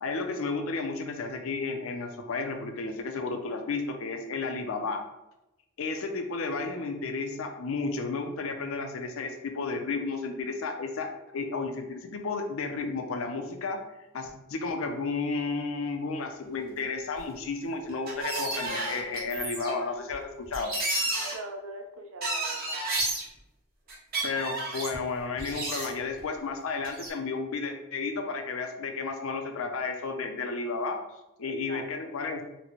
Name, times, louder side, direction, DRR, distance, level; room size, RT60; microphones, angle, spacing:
voice 1, 0.0-5.0 5.8-13.8 14.1-20.7 24.2-31.0 31.4-32.4, left 4 dB, 65° left, 4 dB, 0.5 m, -32 dB
sound 1, 17.1-17.2 17.9-19.7 20.1-20.2 20.4-21.3 22.2-23.2 23.9-24.9 25.4-26.2 26.8-27.1, right 2 dB, 45° right, 0.8 m, -31 dB
voice 2, 21.1-22.8 31.4-31.8, right 2 dB, 65° right, 4 dB, 0.5 m, -42 dB
4.0 x 2.1 x 2.9 m, 0.94 s
head